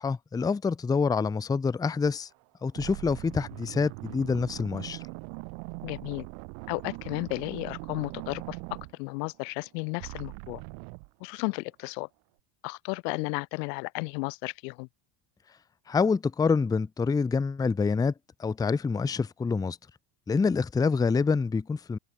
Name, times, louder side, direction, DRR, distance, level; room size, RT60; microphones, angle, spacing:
voice 1, 0.0-2.3 2.6-5.0 15.9-18.1 18.4-19.8 20.3-22.0, left 5 dB, 10° left, 0.5 m, -26 dB
sound 1, 2.1-2.4 2.7-9.7 10.0-11.1, right 40 dB or more, 65° right, 0.9 m, -41 dB
voice 2, 5.8-6.3 6.7-10.6 11.2-12.1 12.6-14.9, left 31 dB, 80° left, 0.8 m, -34 dB
supercardioid pair, 135°, 48 cm